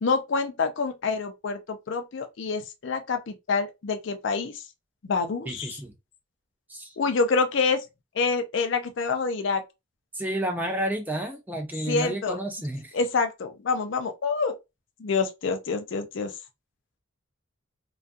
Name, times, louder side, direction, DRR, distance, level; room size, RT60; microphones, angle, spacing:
voice 1, 0.0-4.6 5.0-5.8 7.0-7.8 8.2-9.6 11.9-12.4 12.9-14.5 15.0-16.3, left 4 dB, 60° left, 0.4 m, -27 dB
voice 2, 5.5-5.9 6.7-7.0 10.1-12.9, right 1 dB, 10° right, 0.3 m, -31 dB
2.3 x 2.3 x 2.4 m
head